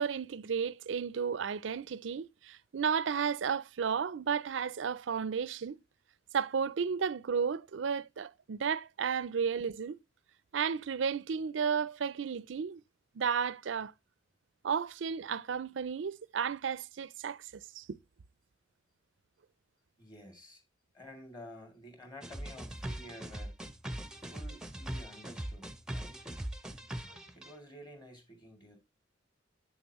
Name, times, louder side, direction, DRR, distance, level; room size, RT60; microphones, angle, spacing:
voice 1, 0.0-5.8 6.3-10.0 10.5-12.8 13.1-13.9 14.6-17.9, right 6 dB, 75° right, 0.5 m, -33 dB
voice 2, 20.0-20.6 20.9-23.6 24.2-26.3 27.3-28.8, left 1 dB, 25° left, 2.6 m, -51 dB
sound 1, 22.2-27.5, right 1 dB, 5° right, 0.7 m, -41 dB
9.1 x 7.1 x 3.0 m
head